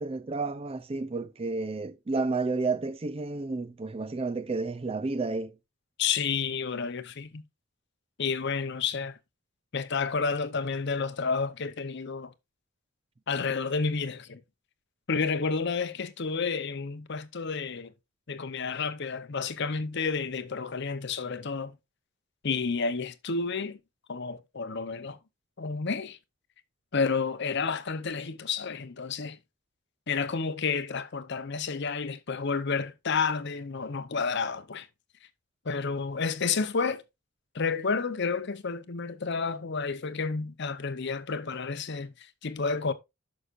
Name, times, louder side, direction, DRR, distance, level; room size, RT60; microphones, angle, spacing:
voice 1, 0.0-5.5, right 3 dB, 30° right, 0.4 m, -31 dB
voice 2, 6.0-7.4 8.2-9.2 9.7-12.3 13.3-14.4 15.1-17.9 18.3-21.7 22.4-23.8 24.1-25.2 25.6-26.2 26.9-29.4 30.1-34.9 35.6-37.0 37.5-42.9, left 5 dB, 55° left, 0.7 m, -30 dB
11.0 x 6.4 x 2.5 m
head